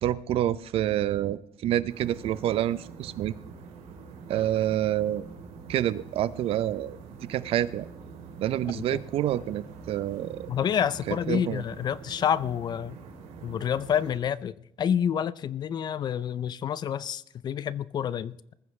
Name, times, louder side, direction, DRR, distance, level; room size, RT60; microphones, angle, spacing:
voice 1, 0.0-3.3 4.3-5.2 5.7-7.0 7.3-7.9 8.4-10.5 11.1-11.6, right 12 dB, 60° right, 0.6 m, -27 dB
sound 1, 1.9-14.2, right 5 dB, 85° right, 3.2 m, -45 dB
voice 2, 10.5-13.0 13.4-18.5, left 8 dB, 40° left, 0.5 m, -28 dB
20.0 x 14.5 x 3.2 m
cardioid pair, 145°, 11 cm